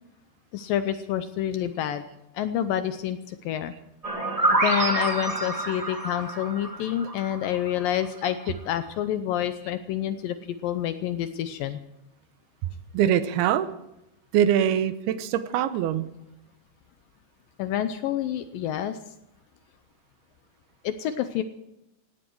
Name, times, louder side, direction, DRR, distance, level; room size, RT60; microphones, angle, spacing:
voice 1, 0.5-2.1 2.3-3.7 4.5-11.8 17.6-19.0 20.8-21.4, left 10 dB, 75° left, 10 dB, 2.1 m, -28 dB
sound 1, 4.0-7.8, right 2 dB, 35° right, 0.6 m, -27 dB
voice 2, 12.9-13.7 14.3-16.1, right 10 dB, 80° right, 12 dB, 2.7 m, -23 dB
17.0 x 17.0 x 4.7 m, 0.87 s
omnidirectional pair, 4.6 m